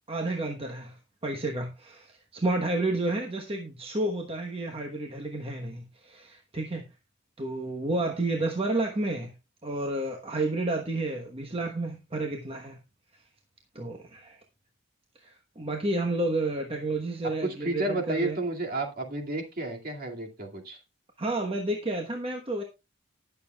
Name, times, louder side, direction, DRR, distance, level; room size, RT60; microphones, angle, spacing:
voice 1, 0.1-1.0 1.2-6.9 7.4-9.3 9.6-12.8 13.7-14.4 15.2-18.4 21.2-22.6, right 2 dB, 25° right, 1.1 m, -31 dB
voice 2, 17.4-20.8, right 2 dB, 45° right, 2.2 m, -31 dB
19.5 x 6.9 x 2.3 m
head